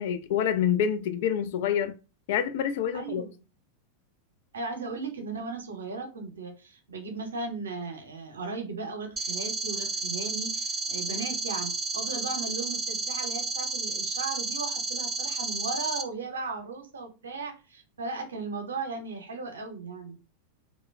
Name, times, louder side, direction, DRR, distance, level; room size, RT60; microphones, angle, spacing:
voice 1, 0.0-1.9 2.3-3.2, left 9 dB, 55° left, 0.3 m, -27 dB
voice 2, 2.9-3.3 4.5-20.2, right 4 dB, 70° right, 0.6 m, -36 dB
sound 1, 9.2-16.0, right 3 dB, 15° right, 0.4 m, -32 dB
3.0 x 2.1 x 2.2 m
figure-of-eight pair, 90°, 0 cm